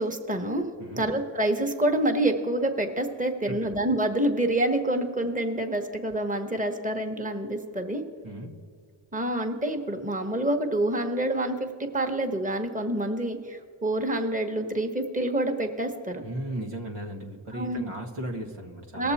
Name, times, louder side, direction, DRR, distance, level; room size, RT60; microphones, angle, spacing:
voice 1, 0.0-0.6 1.0-8.0 9.1-16.2 17.5-17.8 18.9-19.1, right 1 dB, 15° right, 4 dB, 1.3 m, -27 dB
voice 2, 16.2-19.1, right 1 dB, 80° right, 0 dB, 1.6 m, -36 dB
18.5 x 6.8 x 4.2 m, 2.2 s
cardioid pair, 40°, 50 cm